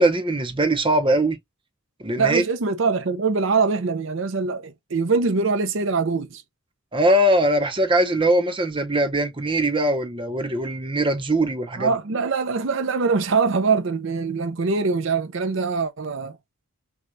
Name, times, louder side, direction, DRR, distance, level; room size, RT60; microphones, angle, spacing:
voice 1, 0.0-1.4 2.0-2.4 6.9-11.9, right 1 dB, 25° right, 0.7 m, -21 dB
voice 2, 2.2-6.4 11.8-16.4, right 4 dB, 60° right, 0.6 m, -23 dB
6.2 x 2.3 x 2.6 m
head